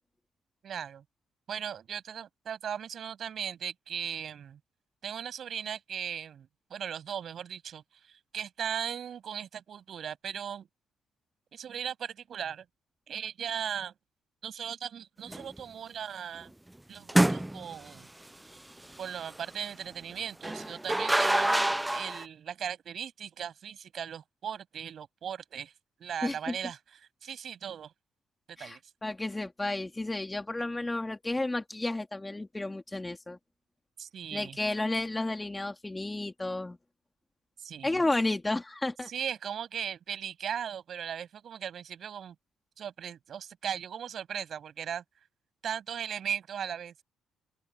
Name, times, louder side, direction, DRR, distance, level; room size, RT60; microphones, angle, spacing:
voice 1, 0.6-1.0 1.5-4.6 5.0-10.7 11.5-12.6 13.1-13.9 14.4-16.5 16.9-18.1 19.0-25.7 26.0-26.8 27.2-27.9 28.6-28.8 34.0-34.6 37.6-38.0 39.1-42.3 42.8-45.0 45.6-46.9, right 8 dB, 60° right, 7.8 m, -38 dB
sound 1, 15.3-15.6 17.1-17.9 20.4-22.2, right 1 dB, 10° right, 0.4 m, -26 dB
voice 2, 26.2-26.6 28.6-33.4 34.3-36.8 37.8-39.1, left 2 dB, 15° left, 3.6 m, -32 dB
open air
cardioid pair, 90°, 0 cm